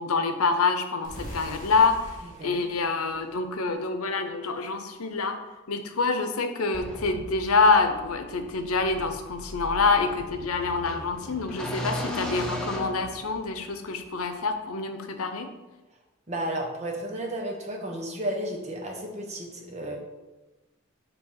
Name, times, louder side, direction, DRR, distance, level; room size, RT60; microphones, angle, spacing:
voice 1, 0.0-5.4 5.7-15.5, left 4 dB, 90° left, 7 dB, 0.8 m, -26 dB
sound 1, 1.0-3.9, equal, 35° left, 2.4 m, -43 dB
voice 2, 2.2-2.7 16.3-20.0, right 1 dB, 30° right, 1 dB, 1.1 m, -33 dB
sound 2, 6.7-13.7, left 1 dB, 5° left, 0.8 m, -37 dB
7.1 x 3.5 x 5.6 m, 1.1 s
head